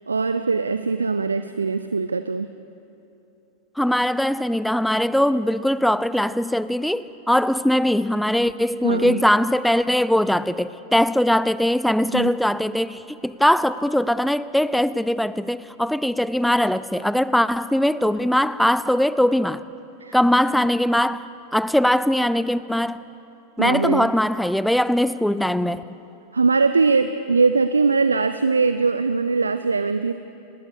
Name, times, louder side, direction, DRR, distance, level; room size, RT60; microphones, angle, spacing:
voice 1, 0.1-2.5 8.8-9.2 12.1-12.3 20.0-20.2 23.6-24.1 26.3-30.1, right 4 dB, 75° right, 0.6 m, -21 dB
voice 2, 3.8-19.6 20.1-21.2 21.5-23.0 23.6-26.0, left 1 dB, ahead, 0.5 m, -21 dB
26.5 x 20.0 x 6.7 m
figure-of-eight pair, 90°, 0 cm